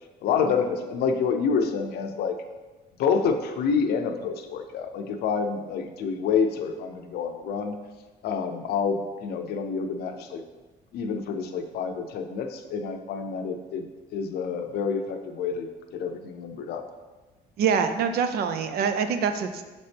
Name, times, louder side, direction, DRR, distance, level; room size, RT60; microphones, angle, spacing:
voice 1, 0.2-2.4 3.0-7.8 8.2-10.4 10.9-13.8 14.1-16.8, left 5 dB, 70° left, 6 dB, 0.6 m, -28 dB
voice 2, 17.6-19.6, right 6 dB, 70° right, 8 dB, 0.6 m, -25 dB
6.6 x 4.1 x 3.4 m, 1.2 s
cardioid pair, 110°, 17 cm